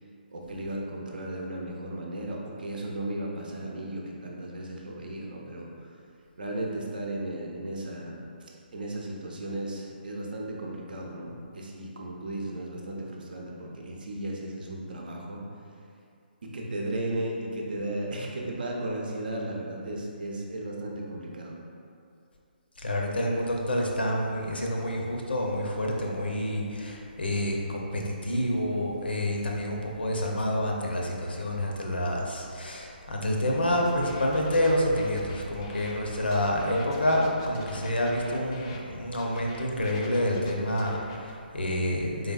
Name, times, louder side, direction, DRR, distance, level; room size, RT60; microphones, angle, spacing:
voice 1, 0.3-5.7 6.4-8.2 8.7-15.4 16.4-21.5, right 1 dB, 60° right, -1 dB, 0.6 m, -35 dB
voice 2, 22.8-42.3, left 1 dB, 75° left, -1 dB, 0.6 m, -28 dB
sound 1, 33.5-38.8 39.1-41.3, equal, 30° left, 0.4 m, -46 dB
3.8 x 3.3 x 2.4 m, 2.5 s
figure-of-eight pair, 140°, 6 cm